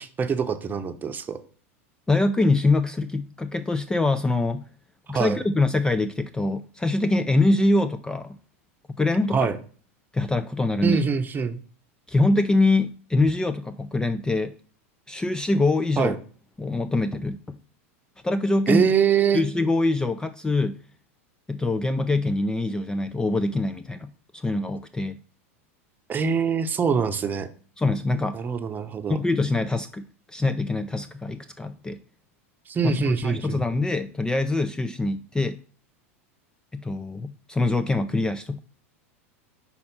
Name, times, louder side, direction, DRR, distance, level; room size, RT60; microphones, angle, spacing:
voice 1, 0.0-1.4 5.1-5.4 9.3-9.6 10.8-11.6 16.0-16.2 18.7-19.4 26.1-27.5 28.3-29.2 32.7-33.6, right 6 dB, 25° right, 9 dB, 0.8 m, -24 dB
voice 2, 2.1-4.7 5.1-8.4 8.9-9.5 10.1-11.0 12.1-14.5 15.1-16.1 16.6-17.6 18.2-18.9 19.3-20.8 21.5-25.2 27.8-28.4 29.1-32.0 32.8-35.6 36.7-38.6, left 2 dB, 10° left, 12 dB, 0.3 m, -24 dB
5.6 x 4.2 x 5.4 m, 0.43 s
hypercardioid pair, 100°, 8 cm